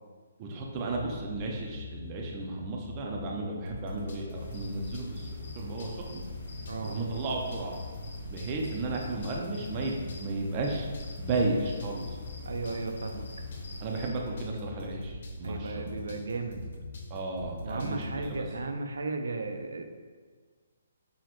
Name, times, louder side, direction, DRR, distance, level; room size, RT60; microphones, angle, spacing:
voice 1, 0.4-5.3 5.5-6.2 6.8-7.8 8.3-10.9 11.2-12.1 13.8-16.0 17.1-18.4, right 2 dB, 25° right, 0 dB, 0.4 m, -34 dB
sound 1, 0.7-18.4, left 2 dB, 50° left, 0.6 m, -42 dB
sound 2, 4.3-14.1, left 1 dB, 80° left, 1.1 m, -45 dB
voice 2, 6.7-7.0 12.5-13.3 14.5-14.6 15.4-16.7 17.6-19.8, right 3 dB, 80° right, 5 dB, 0.4 m, -35 dB
6.0 x 2.1 x 2.9 m, 1.5 s
hypercardioid pair, 170°, 0 cm